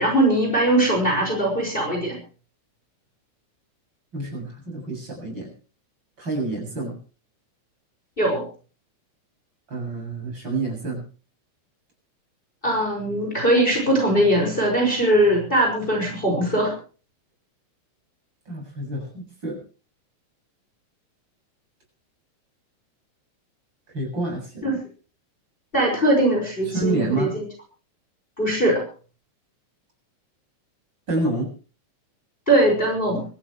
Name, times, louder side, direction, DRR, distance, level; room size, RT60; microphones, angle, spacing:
voice 1, 0.0-2.2 8.2-8.5 12.6-16.7 24.6-24.8 25.7-27.4 28.4-28.8 32.5-33.3, right 1 dB, 15° left, 1 dB, 5.9 m, -20 dB
voice 2, 4.1-5.5 6.2-7.0 9.7-11.0 18.5-19.6 23.9-24.8 26.7-27.3 31.1-31.5, right 2 dB, 35° right, 1 dB, 7.9 m, -28 dB
25.0 x 14.5 x 3.2 m, 0.37 s
omnidirectional pair, 3.5 m